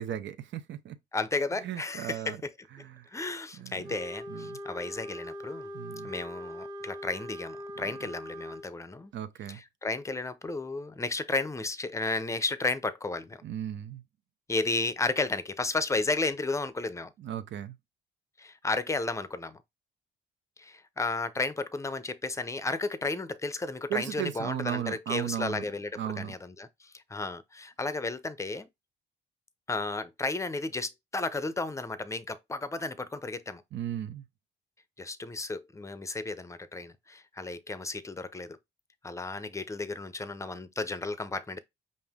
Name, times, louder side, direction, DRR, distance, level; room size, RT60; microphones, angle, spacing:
voice 1, 0.0-1.0 1.6-2.4 2.8-3.1 3.6-3.9 4.3-4.6 5.7-6.1 9.1-9.6 13.4-14.0 17.2-17.7 23.9-25.6 26.0-26.3 33.7-34.2, right 10 dB, 70° right, 0.7 m, -36 dB
voice 2, 1.1-2.5 3.1-5.7 6.0-9.1 9.5-13.4 14.5-17.1 18.4-19.6 20.6-28.7 29.7-33.6 35.0-38.6 39.0-41.6, left 3 dB, 15° left, 0.6 m, -33 dB
Wind instrument woodwind instrument, 3.8-8.7, left 1 dB, 20° right, 0.9 m, -41 dB
5.3 x 2.6 x 3.5 m
cardioid pair, 90°, 20 cm